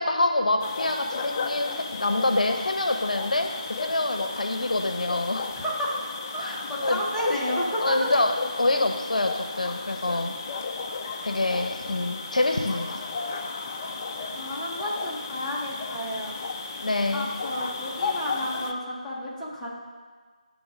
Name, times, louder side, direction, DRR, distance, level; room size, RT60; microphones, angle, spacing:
voice 1, 0.0-5.5 6.4-6.5 6.8-7.0 7.8-10.3 11.2-13.1 16.8-17.3, left 2 dB, 65° left, 5 dB, 0.7 m, -26 dB
sound 1, 0.6-18.7, left 4 dB, 20° left, 0.3 m, -34 dB
voice 2, 5.5-5.9 6.3-7.9 14.3-16.3 17.1-19.7, equal, ahead, -11 dB, 0.9 m, -31 dB
10.0 x 3.5 x 6.3 m, 1.5 s
figure-of-eight pair, 165°, 4 cm